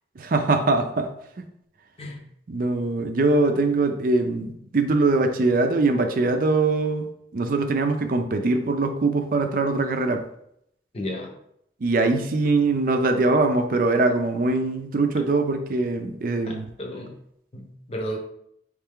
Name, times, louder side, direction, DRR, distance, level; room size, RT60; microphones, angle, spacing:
voice 1, 0.2-1.1 2.0-2.2 2.5-7.1 7.3-10.2 11.8-16.7, right 3 dB, 50° right, 6 dB, 0.4 m, -22 dB
voice 2, 10.9-11.4 16.5-17.1 17.5-18.2, equal, 35° left, 2 dB, 0.8 m, -33 dB
4.4 x 3.2 x 3.6 m, 0.74 s
head